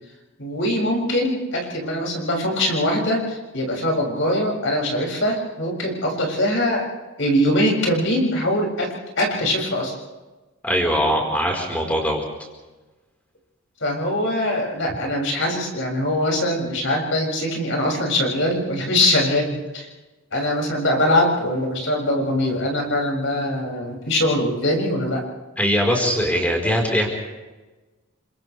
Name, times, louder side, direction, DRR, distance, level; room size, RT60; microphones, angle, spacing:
voice 1, 0.4-6.9 7.2-10.0 13.8-19.9 20.3-25.2, left 1 dB, 65° left, 0 dB, 7.2 m, -22 dB
voice 2, 10.6-12.2 25.6-27.1, equal, 5° left, 1 dB, 4.8 m, -21 dB
30.0 x 26.0 x 3.5 m, 1.2 s
head